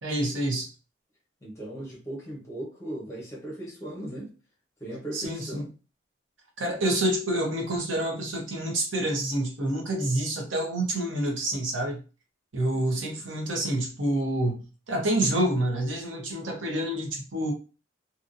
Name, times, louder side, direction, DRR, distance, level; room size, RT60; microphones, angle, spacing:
voice 1, 0.0-0.7 5.1-5.6 6.6-12.0 12.5-17.5, right 1 dB, 90° right, 0.9 m, -28 dB
voice 2, 1.4-4.3 4.8-5.7 12.7-12.8 13.1-13.2, right 1 dB, 15° left, 0.9 m, -38 dB
2.8 x 2.6 x 2.5 m
head